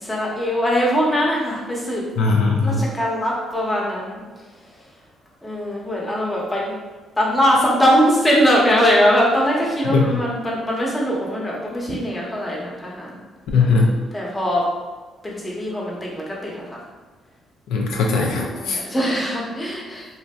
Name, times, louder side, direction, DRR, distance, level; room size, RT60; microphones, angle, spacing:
voice 1, 0.0-2.0 2.6-4.2 5.4-6.7 7.2-13.2 14.1-14.7 15.2-16.8 18.5-20.1, equal, 15° left, -4 dB, 0.9 m, -21 dB
voice 2, 2.2-2.8 9.9-10.1 13.5-14.0 17.7-18.8, left 4 dB, 85° left, 0 dB, 0.4 m, -19 dB
3.1 x 2.6 x 2.3 m, 1.3 s
cardioid pair, 90°, 0 cm